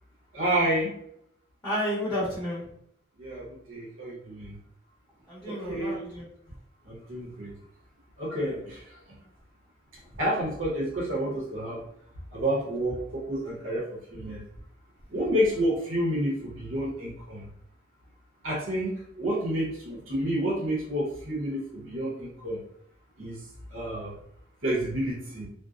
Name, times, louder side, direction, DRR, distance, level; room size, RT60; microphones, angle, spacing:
voice 1, 0.3-0.9 3.2-4.6 5.5-5.9 6.8-7.5 8.2-9.0 10.2-11.8 12.3-14.4 15.1-17.5 18.4-22.6 23.2-23.4 23.7-24.1 24.6-25.5, right 1 dB, 90° right, -5 dB, 0.9 m, -29 dB
voice 2, 1.6-2.6 5.3-6.3, equal, 15° left, -8 dB, 0.8 m, -31 dB
2.6 x 2.1 x 2.4 m, 0.73 s
head